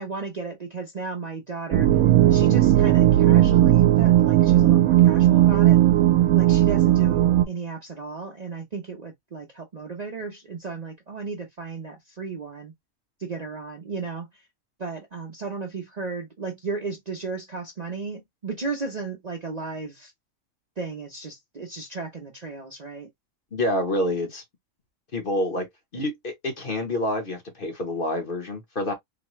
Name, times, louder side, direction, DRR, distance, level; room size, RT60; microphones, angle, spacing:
voice 1, 0.0-1.9 2.3-5.8 6.3-12.7 13.2-14.3 14.8-20.1 20.8-23.1, right 4 dB, 40° right, 0.6 m, -34 dB
sound 1, 1.7-7.4, right 13 dB, 90° right, 1.0 m, -17 dB
voice 2, 23.5-24.4 25.1-25.7 25.9-28.9, left 1 dB, 45° left, 1.1 m, -27 dB
4.0 x 2.2 x 3.0 m
omnidirectional pair, 1.4 m